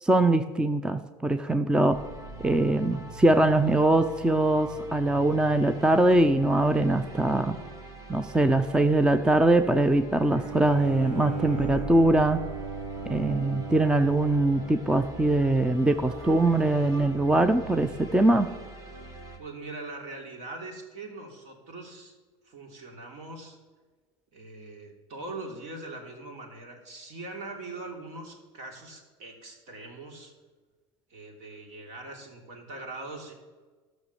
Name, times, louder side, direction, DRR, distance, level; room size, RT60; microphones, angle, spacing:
voice 1, 0.0-2.0 2.4-7.6 8.1-12.4 13.1-18.5, right 2 dB, 5° right, 10 dB, 0.5 m, -22 dB
sound 1, 1.9-19.4, right 2 dB, 25° right, 2.3 m, -43 dB
Bowed string instrument, 10.3-17.3, right 5 dB, 90° right, 2.7 m, -38 dB
voice 2, 19.4-22.2 22.4-23.6 24.3-30.3 31.1-33.3, right 2 dB, 60° right, 2 dB, 3.2 m, -42 dB
13.0 x 6.5 x 6.9 m, 1.4 s
supercardioid pair, 110°, 14 cm